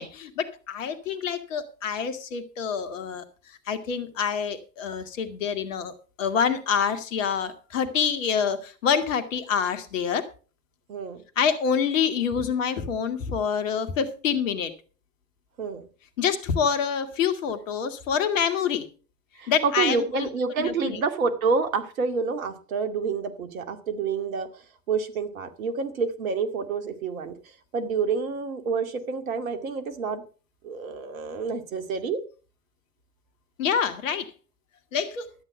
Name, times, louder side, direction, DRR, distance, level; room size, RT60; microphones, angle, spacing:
voice 1, 0.0-10.3 11.4-14.7 16.2-18.9 19.5-20.3 20.6-21.0 33.6-34.3 34.9-35.3, left 7 dB, 50° left, 10 dB, 1.9 m, -27 dB
voice 2, 10.9-11.2 15.6-15.9 19.4-24.5 24.9-27.4 27.7-30.2 30.6-32.2, right 5 dB, 55° right, 9 dB, 2.4 m, -28 dB
13.0 x 8.3 x 5.6 m, 0.38 s
figure-of-eight pair, 105°, 49 cm